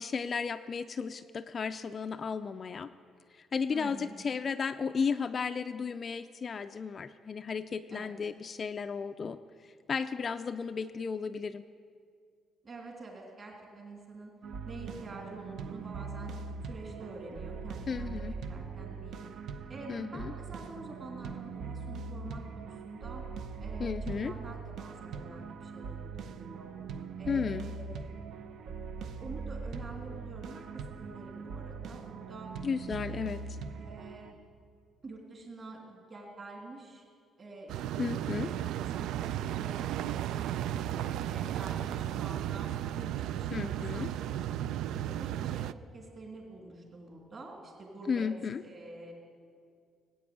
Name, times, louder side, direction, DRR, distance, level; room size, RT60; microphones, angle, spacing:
voice 1, 0.0-2.9 3.3-11.7 17.9-18.3 19.9-20.3 23.8-24.3 27.3-27.7 32.6-33.4 38.0-38.5 43.5-44.1 48.1-48.6, left 5 dB, 30° left, 9 dB, 0.3 m, -34 dB
voice 2, 3.7-4.2 7.9-8.1 12.6-14.3 14.6-16.3 16.6-19.3 19.7-23.2 23.6-26.7 27.2-28.2 28.7-28.8 29.2-32.5 32.9-33.3 33.7-34.4 35.0-37.0 37.4-39.2 39.5-42.7 43.0-44.4 45.1-48.3 48.6-49.1, right 2 dB, 30° right, 0 dB, 3.0 m, -47 dB
sound 1, 14.4-34.3, right 5 dB, 60° right, 0.8 m, -41 dB
sound 2, 37.7-45.7, right 11 dB, 85° right, 0.3 m, -34 dB
18.5 x 8.6 x 8.4 m, 2.2 s
cardioid pair, 170°, 0 cm